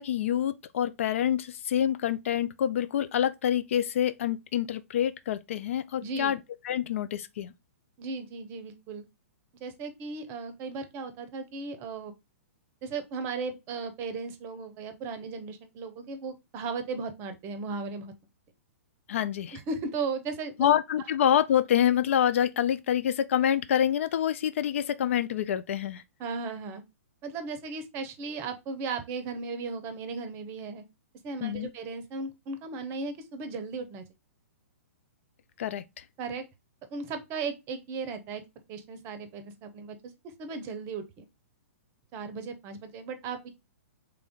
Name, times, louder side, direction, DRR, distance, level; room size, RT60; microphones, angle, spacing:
voice 1, 0.0-6.4 6.6-7.5 19.1-19.6 20.6-26.0 31.4-31.7 35.6-36.0, left 10 dB, 60° left, 0.3 m, -27 dB
voice 2, 6.0-6.3 8.0-9.1 9.6-12.1 12.8-18.1 19.5-20.7 26.2-26.8 27.2-30.8 31.2-34.0 36.2-36.4 36.9-40.0 40.4-41.3 42.1-43.5, right 4 dB, 30° right, 0.6 m, -36 dB
3.3 x 2.5 x 3.5 m
hypercardioid pair, 125°, 8 cm